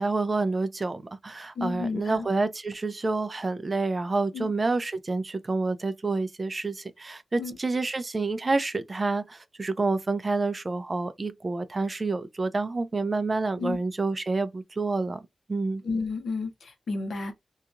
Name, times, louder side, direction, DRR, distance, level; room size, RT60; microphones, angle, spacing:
voice 1, 0.0-15.2 15.5-15.8, right 3 dB, 30° right, 0.4 m, -28 dB
voice 2, 1.6-2.3 4.3-4.5 7.4-7.6 13.6-13.8 15.8-17.3, left 4 dB, 75° left, 0.8 m, -31 dB
2.8 x 2.3 x 2.4 m
wide cardioid pair, 120°, 0 cm